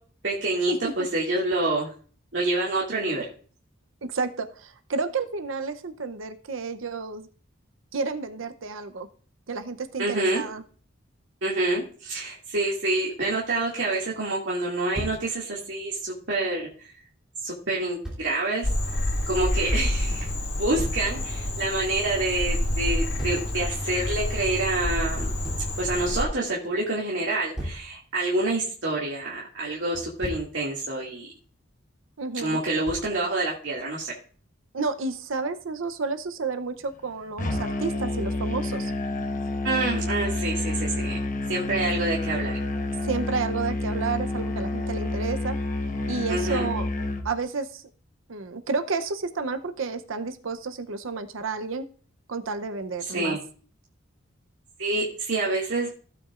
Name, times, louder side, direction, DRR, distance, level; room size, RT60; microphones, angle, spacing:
voice 1, 0.2-1.9 2.3-3.3 10.0-10.4 11.4-16.9 17.4-18.7 19.3-20.3 20.6-25.3 25.8-31.3 32.4-34.1 39.6-41.2 41.5-42.6 46.3-46.7 53.1-53.4 54.8-55.9, right 2 dB, 65° right, -5 dB, 2.3 m, -27 dB
voice 2, 4.0-7.3 7.9-9.1 9.5-10.6 32.2-32.6 34.7-38.9 43.0-45.6 46.1-46.9 47.2-47.8 48.3-51.9 52.3-53.4, right 4 dB, 85° right, 8 dB, 0.8 m, -31 dB
Thump thud, 14.9-15.2 18.0-18.2 20.8-21.0 23.2-23.5 25.4-25.7 27.6-27.9 29.9-30.5 32.9-33.2, equal, 5° right, 3.0 m, -34 dB
Frog, 18.6-26.2, left 1 dB, 65° left, 2.0 m, -28 dB
Musical instrument, 37.4-47.3, left 2 dB, 40° left, 1.0 m, -29 dB
15.5 x 8.5 x 2.5 m, 0.42 s
head